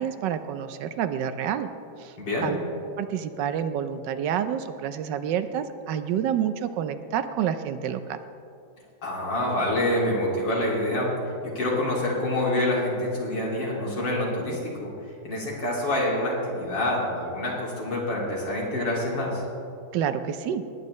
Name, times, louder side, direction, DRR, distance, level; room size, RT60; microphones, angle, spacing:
voice 1, 0.0-1.7 2.0-2.1 2.4-2.6 3.0-8.2 19.9-20.6, right 9 dB, 75° right, 11 dB, 1.2 m, -28 dB
voice 2, 2.2-2.5 9.0-11.1 11.4-14.9 15.2-19.4, left 1 dB, 75° left, -5 dB, 3.3 m, -26 dB
19.5 x 9.4 x 3.1 m, 2.6 s
omnidirectional pair, 2.0 m